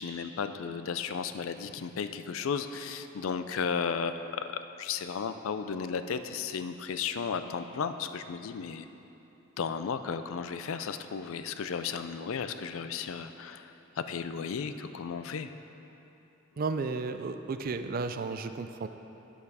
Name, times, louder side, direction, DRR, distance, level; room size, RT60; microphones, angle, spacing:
voice 1, 0.0-4.3 4.8-8.9 9.6-15.5, left 6 dB, 70° left, 10 dB, 0.4 m, -34 dB
voice 2, 16.6-18.9, right 4 dB, 45° right, 9 dB, 0.3 m, -33 dB
9.0 x 7.2 x 4.8 m, 3.0 s
head